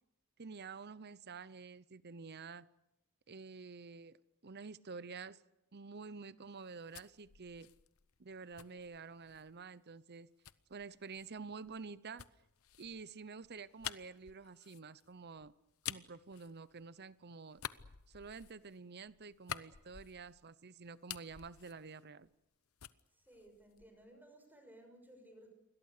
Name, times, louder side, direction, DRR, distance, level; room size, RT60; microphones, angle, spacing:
voice 1, 0.4-2.7 3.3-4.2 4.4-5.4 5.7-7.7 8.2-10.3 10.7-12.3 12.8-15.5 15.9-17.6 18.1-22.3, right 4 dB, 50° right, 0.8 m, -49 dB
sound 1, 6.5-9.6 10.4-17.1 17.5-20.5 20.8-22.5 22.8-24.1, left 10 dB, 80° left, 0.9 m, -50 dB
voice 2, 23.1-25.5, right 1 dB, 10° right, 6.0 m, -59 dB
28.5 x 22.0 x 6.7 m
head